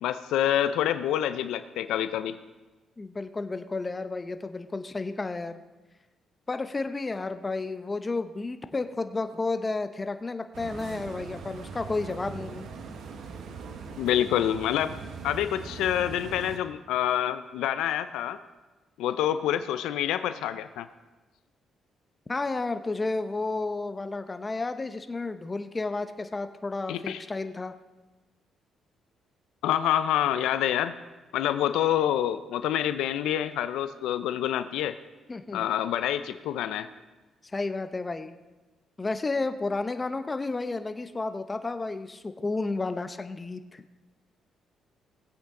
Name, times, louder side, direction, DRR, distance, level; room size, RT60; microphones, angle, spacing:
voice 1, 0.0-2.4 14.0-14.9 15.2-18.4 19.0-20.9 26.9-27.2 29.6-30.9 31.3-35.0 35.5-36.9, left 11 dB, 90° left, 11 dB, 0.5 m, -27 dB
voice 2, 3.0-5.6 6.5-12.7 22.3-27.7 35.3-35.7 37.5-38.4 39.0-43.8, left 3 dB, 25° left, 9 dB, 0.7 m, -32 dB
calle peatonal, 10.5-16.6, right 5 dB, 70° right, 1.1 m, -41 dB
19.0 x 8.1 x 3.7 m, 1.2 s
cardioid pair, 90°, 0 cm